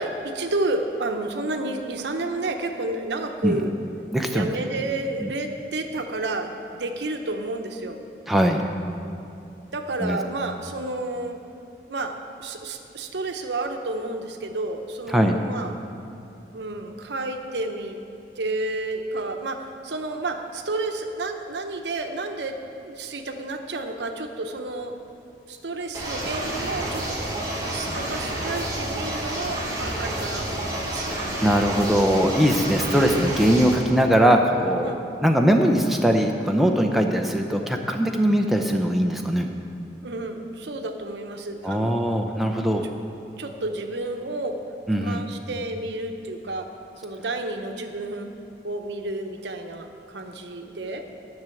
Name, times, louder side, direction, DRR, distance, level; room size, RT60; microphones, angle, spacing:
voice 1, 0.0-3.7 4.3-8.0 9.7-11.4 11.9-12.1 12.4-15.8 16.5-18.0 18.4-22.6 22.8-25.0 25.5-27.2 27.6-31.2 34.8-35.0 40.0-42.5 43.4-44.6 45.0-46.7 47.0-48.3 48.6-51.0, right 2 dB, 80° right, 5 dB, 0.8 m, -31 dB
voice 2, 4.1-4.5 5.2-5.3 8.3-8.7 10.0-10.2 15.1-15.4 31.1-34.9 35.2-39.5 41.6-42.8 44.9-45.2, equal, ahead, 2 dB, 0.5 m, -21 dB
sound 1, 25.9-33.8, right 1 dB, 20° right, 1.6 m, -29 dB
10.5 x 6.1 x 7.7 m, 2.7 s
head